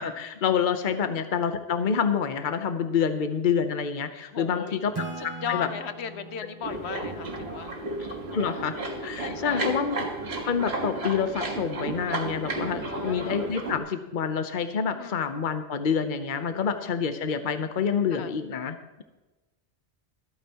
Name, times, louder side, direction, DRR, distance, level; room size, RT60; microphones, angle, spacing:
voice 1, 0.0-4.9 5.2-5.7 8.1-8.7 9.0-10.0 10.4-19.0, left 7 dB, 50° left, 9 dB, 1.0 m, -27 dB
voice 2, 4.3-4.8 5.2-8.4 9.2-9.7 12.8-13.4 14.9-15.3 16.5-17.0 18.1-18.3, left 7 dB, 90° left, 11 dB, 1.1 m, -37 dB
Acoustic guitar / Strum, 4.9-8.5, right 3 dB, 25° right, 0.7 m, -41 dB
sound 1, 6.6-13.8, right 2 dB, 75° right, 1.9 m, -33 dB
25.0 x 9.0 x 3.0 m, 1.1 s
omnidirectional pair, 1.1 m